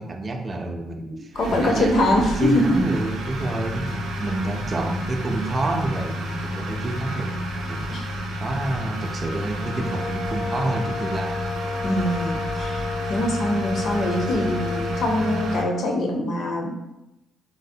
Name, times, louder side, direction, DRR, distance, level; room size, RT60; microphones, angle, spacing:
voice 1, 0.0-7.4 7.6-7.9 8.4-11.4, right 2 dB, 35° right, 3 dB, 0.4 m, -28 dB
voice 2, 1.1-2.8 7.9-8.1 11.8-12.8 13.1-16.7, left 1 dB, 65° left, 2 dB, 0.6 m, -23 dB
sound 1, 1.3-15.6, equal, 90° right, 0.5 m, -30 dB
sound 2, 9.5-16.1, left 4 dB, 85° left, 1.1 m, -32 dB
3.9 x 2.0 x 2.6 m, 0.93 s
cardioid pair, 90°, 0 cm